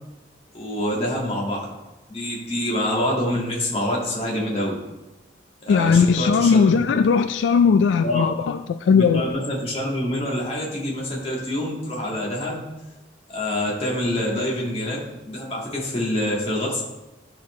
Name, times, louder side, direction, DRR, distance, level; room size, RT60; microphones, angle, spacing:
voice 1, 0.5-1.7 2.1-4.8 5.6-6.6 8.0-8.2 8.9-12.6 13.3-15.0 15.3-16.8, left 1 dB, 35° left, -4 dB, 1.8 m, -26 dB
voice 2, 5.7-9.2, left 5 dB, 80° left, 9 dB, 0.3 m, -18 dB
11.5 x 4.3 x 3.1 m, 1.0 s
head